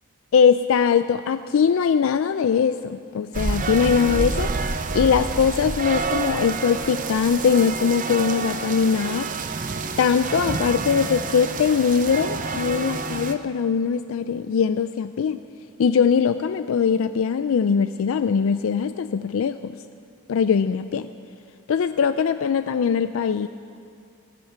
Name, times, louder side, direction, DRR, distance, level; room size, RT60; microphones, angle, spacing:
voice 1, 0.3-9.3 10.0-15.4 15.8-19.8 20.3-21.1 21.7-23.5, left 6 dB, 70° left, 11 dB, 0.3 m, -21 dB
sound 1, 3.3-13.3, right 4 dB, 35° right, 0.6 m, -28 dB
15.0 x 13.5 x 5.6 m, 2.5 s
head